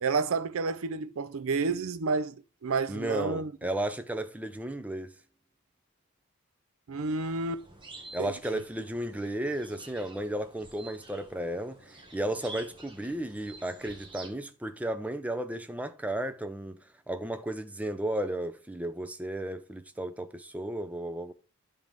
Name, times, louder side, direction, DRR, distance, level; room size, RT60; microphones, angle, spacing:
voice 1, 0.0-3.5 6.9-7.6 8.2-8.3, right 4 dB, 75° right, 0.5 m, -30 dB
voice 2, 2.9-5.1 8.1-21.3, right 1 dB, 5° right, 0.5 m, -34 dB
sound 1, 7.1-14.3, right 2 dB, 20° right, 1.3 m, -50 dB
9.6 x 3.4 x 5.2 m
head